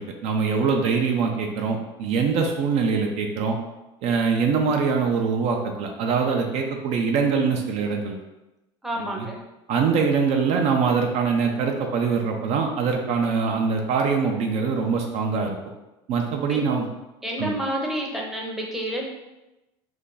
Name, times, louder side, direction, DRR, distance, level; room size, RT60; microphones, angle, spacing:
voice 1, 0.0-3.6 4.0-8.2 9.0-9.3 9.7-15.6 16.1-16.9 17.4-17.6, right 5 dB, 55° right, 2 dB, 0.5 m, -23 dB
voice 2, 8.8-9.4 16.5-16.8 17.2-19.1, right 1 dB, ahead, -2 dB, 0.6 m, -29 dB
2.5 x 2.2 x 3.8 m, 0.99 s
supercardioid pair, 105°, 13 cm